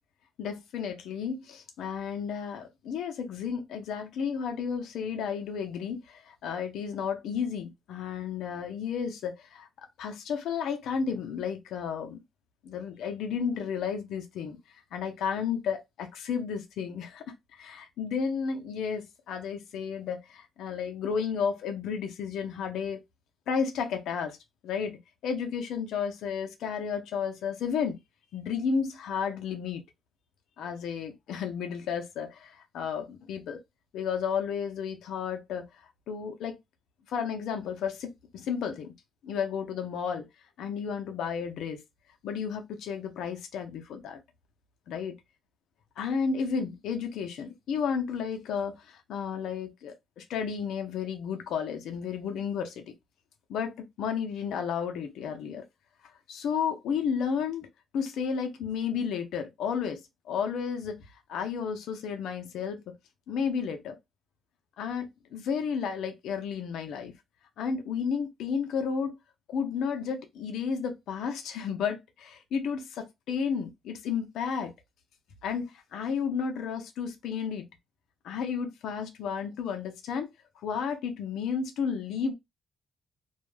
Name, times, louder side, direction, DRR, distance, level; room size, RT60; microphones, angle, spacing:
voice 1, 0.4-9.7 10.0-12.2 12.6-17.2 17.5-23.0 23.5-24.4 24.6-28.0 28.3-29.8 30.6-33.6 33.9-36.6 37.1-38.9 39.2-40.3 40.6-41.8 42.2-44.2 44.9-45.1 46.0-52.9 53.5-55.6 56.3-57.7 57.9-62.9 63.3-64.0 64.8-67.1 67.6-69.2 69.5-74.7 75.4-77.7 78.2-80.3 80.6-82.3, left 6 dB, 80° left, 0.5 m, -32 dB
2.3 x 2.1 x 3.1 m
cardioid pair, 90°, 0 cm